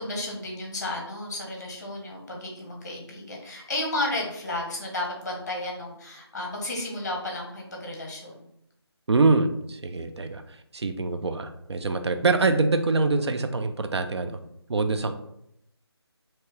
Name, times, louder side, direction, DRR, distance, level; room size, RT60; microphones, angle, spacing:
voice 1, 0.0-8.4, left 2 dB, 40° left, 0 dB, 1.0 m, -33 dB
voice 2, 9.1-10.4 10.7-14.4 14.7-15.1, right 3 dB, 75° right, 8 dB, 0.5 m, -24 dB
3.2 x 2.9 x 3.2 m, 0.78 s
figure-of-eight pair, 175°, 14 cm